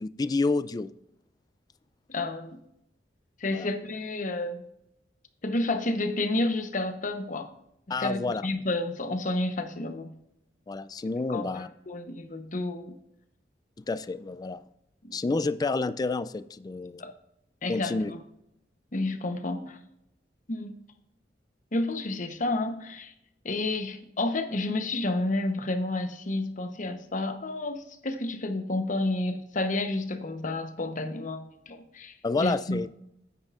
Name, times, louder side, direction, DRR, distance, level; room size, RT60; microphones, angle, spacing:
voice 1, 0.0-0.9 3.5-3.7 7.9-8.4 10.7-11.7 13.8-14.6 15.1-17.0 17.7-18.1 32.2-32.9, left 3 dB, 25° left, 14 dB, 0.3 m, -29 dB
voice 2, 2.1-2.6 3.4-4.6 5.4-7.5 7.9-10.1 11.3-13.0 15.0-15.2 17.0-17.1 17.6-18.2 18.9-19.8 20.5-20.8 21.7-23.1 23.4-32.9, left 2 dB, 50° left, 8 dB, 0.9 m, -30 dB
9.6 x 8.9 x 2.5 m, 0.80 s
head